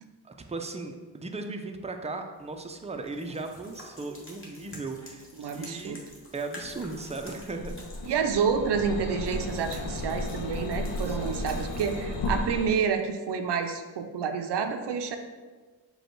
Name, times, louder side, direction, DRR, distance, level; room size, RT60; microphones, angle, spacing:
voice 1, 0.2-6.0 6.3-7.7 11.1-11.5, right 3 dB, 15° right, 4 dB, 0.5 m, -37 dB
sound 1, 2.3-12.7, left 1 dB, 30° left, 1.4 m, -49 dB
voice 2, 5.4-6.0 8.1-15.2, right 6 dB, 70° right, 7 dB, 0.5 m, -29 dB
sound 2, 6.6-12.7, left 2 dB, 85° left, 0.6 m, -34 dB
5.0 x 2.3 x 4.5 m, 1.4 s
cardioid pair, 55°, 42 cm